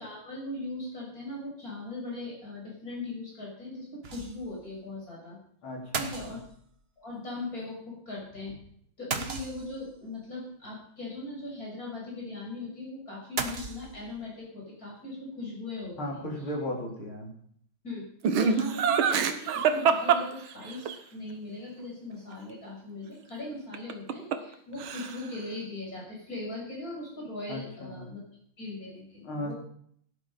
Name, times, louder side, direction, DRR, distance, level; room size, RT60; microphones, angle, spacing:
voice 1, 0.0-5.4 5.9-6.4 7.0-8.6 9.0-16.3 17.8-18.0 18.3-28.2 28.6-29.5, left 2 dB, 45° left, -3 dB, 7.5 m, -39 dB
sound 1, 4.0-4.6 4.9-5.0 5.9-6.8 9.1-10.0 13.4-14.3, right 4 dB, 35° right, 1.2 m, -35 dB
voice 2, 5.6-6.1 16.0-17.3 27.5-28.1 29.2-29.5, left 1 dB, 85° left, -1 dB, 4.8 m, -35 dB
Laughter, 18.2-20.9 23.7-24.5 24.8-25.4, right 7 dB, 80° right, 1.9 m, -25 dB
16.5 x 11.0 x 5.7 m, 0.64 s
omnidirectional pair, 2.2 m